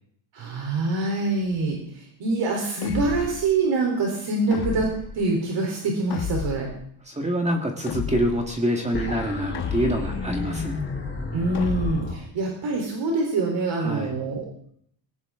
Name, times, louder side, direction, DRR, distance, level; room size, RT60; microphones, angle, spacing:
voice 1, 0.3-4.9 5.1-6.7 11.3-14.5, right 3 dB, 70° right, 0 dB, 3.8 m, -25 dB
sound 1, 2.8-3.5 4.5-5.1 6.1-6.8 7.9-8.5 9.5-10.2 11.5-12.2, left 8 dB, 55° left, 1.3 m, -31 dB
voice 2, 7.1-10.8 13.8-14.1, equal, 15° right, 2 dB, 1.7 m, -26 dB
sound 2, 8.9-12.1, left 3 dB, 25° left, 4.4 m, -31 dB
19.5 x 17.5 x 3.7 m, 0.65 s
cardioid pair, 170°, 46 cm